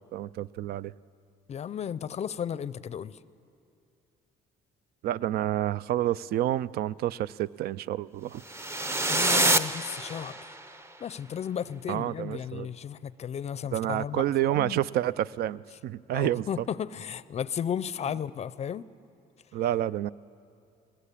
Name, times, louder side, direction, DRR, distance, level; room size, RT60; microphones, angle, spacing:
voice 1, 0.1-0.9 5.0-8.4 11.9-12.7 13.7-16.7 19.5-20.1, right 13 dB, 65° right, 19 dB, 0.4 m, -29 dB
voice 2, 1.5-3.2 9.1-10.3 11.0-14.8 16.1-18.9, left 8 dB, 40° left, 18 dB, 0.5 m, -34 dB
sound 1, 8.5-10.7, right 2 dB, 15° right, 0.7 m, -26 dB
20.0 x 19.0 x 8.4 m, 2.5 s
cardioid pair, 110°, 17 cm